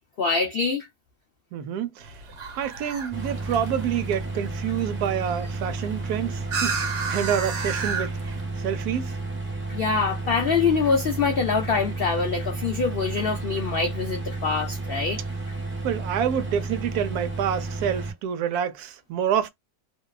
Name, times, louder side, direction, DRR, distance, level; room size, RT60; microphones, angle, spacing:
voice 1, 0.2-0.9 9.7-15.2, left 5 dB, 85° left, 0.5 m, -24 dB
voice 2, 1.5-2.2 2.5-8.2 8.6-9.2 15.8-19.5, right 9 dB, 75° right, 1.1 m, -27 dB
sound 1, 2.0-8.4, right 4 dB, 50° right, 1.1 m, -33 dB
sound 2, 3.1-18.1, right 3 dB, 10° right, 0.6 m, -32 dB
2.7 x 2.2 x 2.2 m
omnidirectional pair, 1.7 m